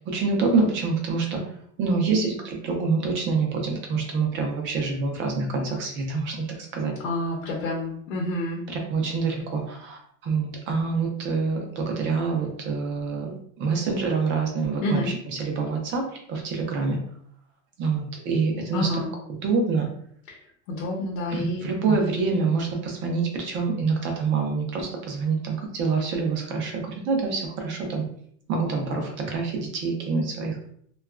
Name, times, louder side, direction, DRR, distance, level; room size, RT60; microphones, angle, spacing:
voice 1, 0.1-1.4 1.8-6.5 6.7-7.0 8.7-17.0 17.8-18.9 19.4-19.9 21.3-28.1 28.5-30.6, right 4 dB, 30° right, 2 dB, 0.5 m, -26 dB
voice 2, 7.0-8.6 14.8-15.1 18.7-19.1 20.3-20.4 20.7-21.6, left 1 dB, 70° left, -1 dB, 0.8 m, -28 dB
2.7 x 2.3 x 2.3 m, 0.62 s
supercardioid pair, 155°, 40 cm